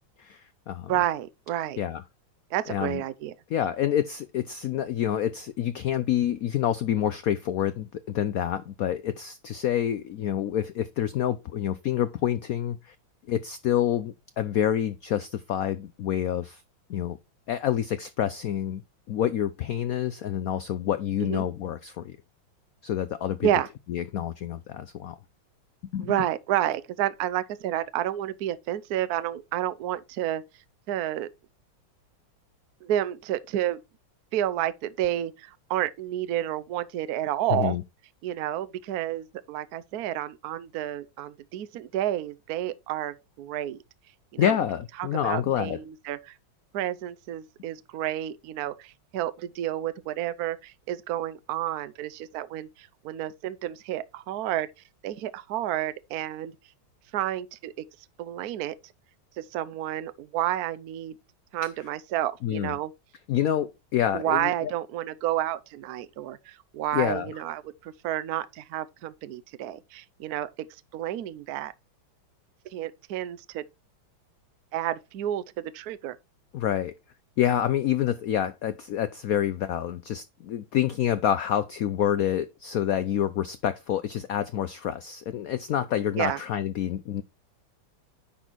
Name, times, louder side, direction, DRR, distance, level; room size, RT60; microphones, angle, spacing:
voice 1, 0.2-0.9 1.8-2.0 2.7-3.0 3.5-12.9 13.3-16.6 16.9-17.2 17.5-18.8 19.1-22.1 22.8-23.5 23.9-25.2 25.9-26.1 37.5-37.8 44.4-45.8 62.4-62.8 63.3-64.7 66.9-67.3 76.5-76.9 77.4-87.2, left 10 dB, 85° left, 0.7 m, -27 dB
voice 2, 0.9-1.8 2.5-3.3 21.3-21.4 23.4-23.7 26.0-30.4 30.9-31.3 32.8-33.8 34.3-37.8 38.2-43.8 44.3-44.6 45.0-46.4 46.7-54.7 55.0-56.5 57.1-57.8 58.2-58.8 59.4-61.1 61.5-62.9 64.1-70.5 70.9-71.7 72.7-73.6 74.7-76.2 86.2-86.4, right 12 dB, 70° right, 0.9 m, -30 dB
10.0 x 4.1 x 4.4 m
omnidirectional pair, 2.2 m